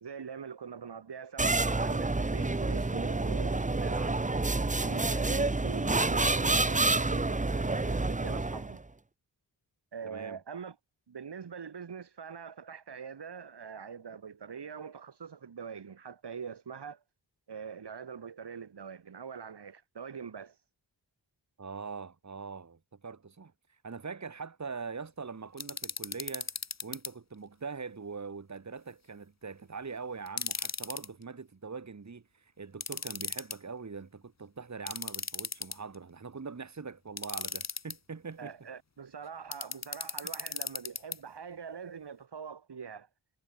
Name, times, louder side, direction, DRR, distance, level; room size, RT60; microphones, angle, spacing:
voice 1, 0.0-4.2 4.8-8.8 9.9-10.8 11.1-17.0 17.5-20.6 38.4-43.1, right 6 dB, 65° right, 1.8 m, -43 dB
sound 1, 1.4-8.8, right 2 dB, 15° right, 0.9 m, -28 dB
voice 2, 10.0-10.4 21.6-23.5 23.8-26.5 26.8-38.5, right 5 dB, 40° right, 1.7 m, -42 dB
sound 2, 25.6-27.1 30.3-31.1 32.8-33.6 34.9-36.0 37.2-37.9 39.5-41.2, left 4 dB, 35° left, 1.3 m, -36 dB
wide cardioid pair, 70°, 44 cm